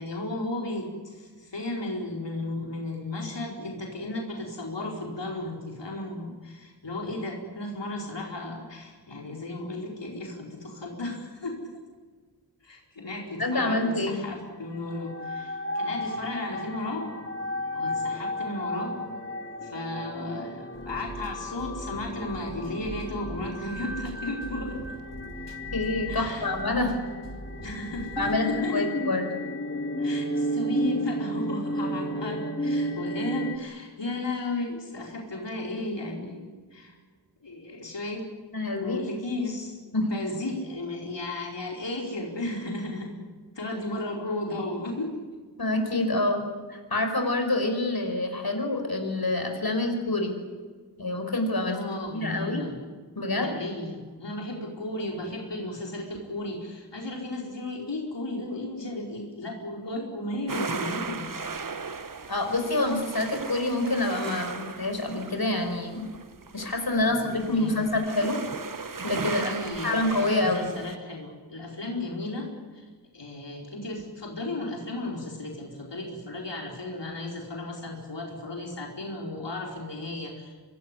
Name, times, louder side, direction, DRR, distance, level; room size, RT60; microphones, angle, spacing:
voice 1, 0.0-11.7 12.6-17.1 17.7-19.0 19.6-24.8 26.1-26.5 27.6-28.9 30.0-37.0 37.4-38.3 38.8-39.8 40.1-43.1 43.5-45.2 51.6-52.8 53.3-61.3 66.9-67.9 69.3-80.6, left 2 dB, 90° left, -1 dB, 4.7 m, -34 dB
voice 2, 13.4-14.2 25.7-27.0 28.2-29.3 38.5-39.0 39.9-40.1 45.6-50.3 51.0-51.8 52.1-52.6 53.2-53.6 62.3-66.1 66.5-68.4 69.0-69.5 69.8-70.7, left 2 dB, 60° left, 5 dB, 5.2 m, -27 dB
sound 1, 14.7-33.6, equal, 30° left, 2.8 m, -33 dB
sound 2, 20.7-28.4, right 2 dB, 85° right, 3.3 m, -42 dB
sound 3, 60.5-71.0, right 4 dB, 50° right, 1.2 m, -37 dB
25.5 x 20.0 x 10.0 m, 1.5 s
wide cardioid pair, 65°, 42 cm